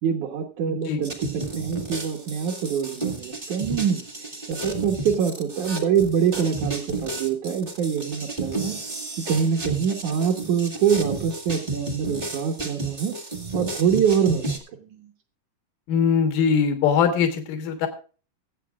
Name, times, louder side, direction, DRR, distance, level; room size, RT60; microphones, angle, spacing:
voice 1, 0.0-4.1 4.5-8.8 9.3-13.1 13.5-14.5 14.8-15.1, right 7 dB, 70° right, 0 dB, 2.4 m, -25 dB
voice 2, 0.7-1.0 15.9-17.9, left 7 dB, 90° left, 5 dB, 3.0 m, -22 dB
sound 1, 1.0-14.6, right 2 dB, 30° right, 0.9 m, -32 dB
22.5 x 7.8 x 2.4 m, 0.37 s
omnidirectional pair, 3.8 m